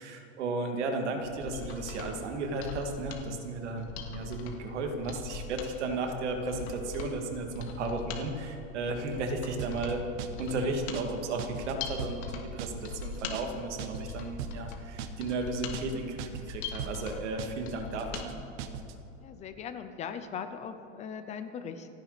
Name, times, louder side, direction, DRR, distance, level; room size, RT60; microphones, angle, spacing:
voice 1, 0.0-3.9 4.1-10.0 10.4-18.3, right 3 dB, 90° right, 4 dB, 2.4 m, -34 dB
Mechanisms, 1.2-18.3 18.6-18.7, left 5 dB, 70° left, 2.5 m, -42 dB
sound 1, 9.6-9.9 10.2-10.5 10.8-11.1 11.4-11.7 12.0-12.3 12.6-12.9 13.2-13.5 13.8-14.1 14.4-14.7 15.0-15.3 15.6-15.9 16.2-16.5 16.8-17.1 17.4-17.7 18.0-18.3 18.6-18.9, right 9 dB, 45° right, 1.0 m, -39 dB
voice 2, 19.2-21.9, left 7 dB, 20° left, 9 dB, 0.7 m, -39 dB
28.5 x 10.5 x 4.2 m, 2.9 s
supercardioid pair, 165°, 34 cm